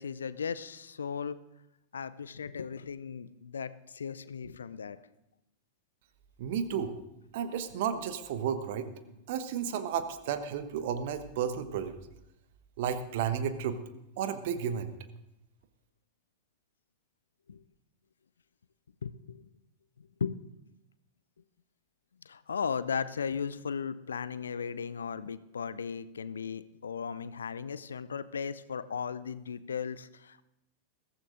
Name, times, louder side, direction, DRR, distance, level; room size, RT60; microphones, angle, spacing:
voice 1, 0.0-1.4 1.9-5.0 17.5-17.6 19.0-19.5 20.0-20.4 22.3-30.5, left 6 dB, 70° left, 16 dB, 0.5 m, -36 dB
voice 2, 6.4-7.0 7.3-8.9 9.3-11.9 12.8-13.8 14.2-14.9, right 8 dB, 50° right, 10 dB, 1.1 m, -32 dB
21.5 x 15.5 x 2.6 m, 0.89 s
figure-of-eight pair, 90°, 0 cm